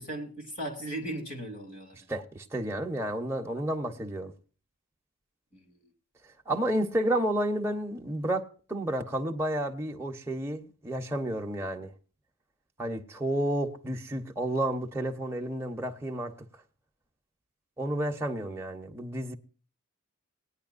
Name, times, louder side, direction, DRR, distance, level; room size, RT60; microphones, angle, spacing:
voice 1, 0.0-2.0 5.5-5.8, right 1 dB, 40° left, 2.8 m, -37 dB
voice 2, 2.1-4.3 6.5-11.9 12.8-16.3 17.8-19.3, right 1 dB, 10° right, 1.0 m, -31 dB
19.0 x 10.0 x 2.5 m
head